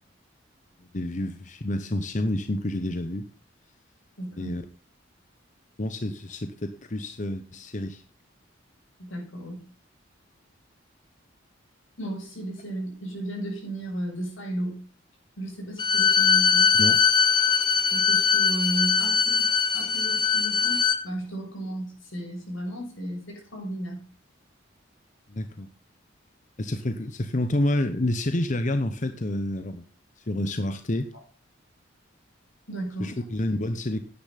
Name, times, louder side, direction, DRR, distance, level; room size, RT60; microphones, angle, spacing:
voice 1, 0.9-3.3 4.3-4.6 5.8-8.0 16.8-17.0 25.3-25.7 26.6-29.8 30.2-31.1 33.0-34.0, left 1 dB, 40° left, 9 dB, 0.9 m, -28 dB
voice 2, 4.2-4.5 9.0-9.6 12.0-14.8 15.4-16.7 17.9-19.5 19.7-24.0 32.7-33.1, right 1 dB, 85° left, 0 dB, 7.1 m, -34 dB
Bowed string instrument, 15.8-21.0, left 6 dB, 25° left, 1.2 m, -21 dB
10.0 x 9.8 x 5.8 m, 0.38 s
head